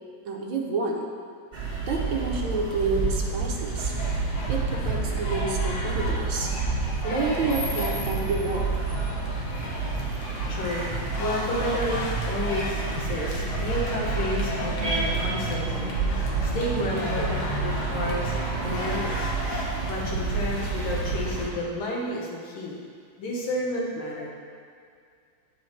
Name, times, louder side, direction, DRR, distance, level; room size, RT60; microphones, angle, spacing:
voice 1, 0.3-1.0 1.9-3.9 4.5-6.5 7.0-8.7 17.1-17.4 19.3-19.4 24.0-24.1, right 3 dB, 75° right, 0 dB, 1.7 m, -29 dB
sound 1, 1.5-21.5, right 4 dB, 25° right, 1.4 m, -29 dB
sound 2, 3.9-21.7, left 2 dB, 60° left, 1.6 m, -36 dB
voice 2, 10.5-19.3 19.9-22.8 23.2-24.3, left 1 dB, 80° left, -3 dB, 2.2 m, -31 dB
9.2 x 4.9 x 4.5 m, 2.2 s
omnidirectional pair, 2.2 m